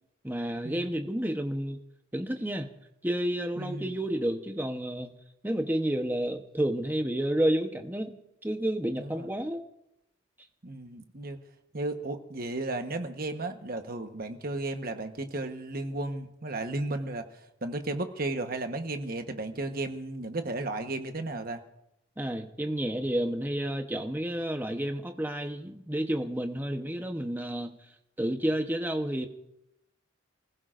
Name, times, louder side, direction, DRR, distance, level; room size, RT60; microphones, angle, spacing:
voice 1, 0.2-1.8 2.1-2.7 3.0-5.1 5.4-8.1 8.4-9.6 22.2-27.7 28.2-29.3, right 1 dB, 10° right, 5 dB, 0.9 m, -30 dB
voice 2, 3.6-3.9 9.0-9.3 10.6-11.4 11.7-17.3 17.6-21.6, right 2 dB, 45° right, 6 dB, 1.2 m, -34 dB
29.5 x 16.0 x 2.5 m, 0.86 s
head